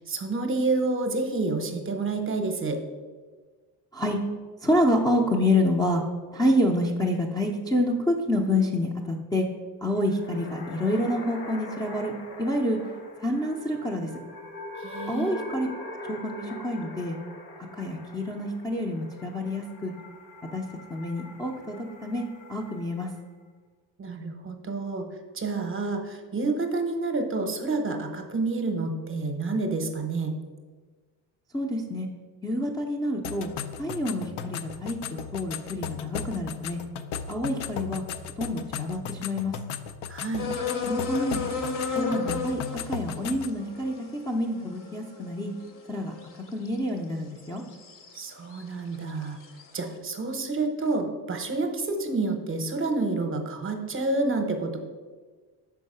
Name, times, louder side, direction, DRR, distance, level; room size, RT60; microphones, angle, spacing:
voice 1, 0.1-2.8 14.8-15.4 24.0-25.1 25.3-30.3 40.1-40.5 48.1-49.4 49.7-54.8, right 3 dB, 30° right, 6 dB, 0.7 m, -29 dB
voice 2, 4.6-6.0 6.3-9.5 9.8-12.1 12.4-12.8 13.2-14.1 15.1-17.2 17.7-19.9 20.5-20.6 20.9-21.8 22.0-23.1 31.5-32.1 32.4-33.5 33.8-36.8 37.3-38.0 38.4-39.6 40.8-41.4 41.9-45.5 45.9-46.1 46.5-47.6, left 1 dB, 10° left, -3 dB, 0.4 m, -27 dB
sound 1, 9.9-23.2, left 2 dB, 70° left, 1.3 m, -43 dB
sound 2, 33.2-43.6, left 7 dB, 85° left, 0.5 m, -36 dB
sound 3, 40.4-46.8 47.4-48.2 48.5-49.7, left 4 dB, 50° left, 0.8 m, -34 dB
5.5 x 4.6 x 5.4 m, 1.4 s
cardioid pair, 140°, 42 cm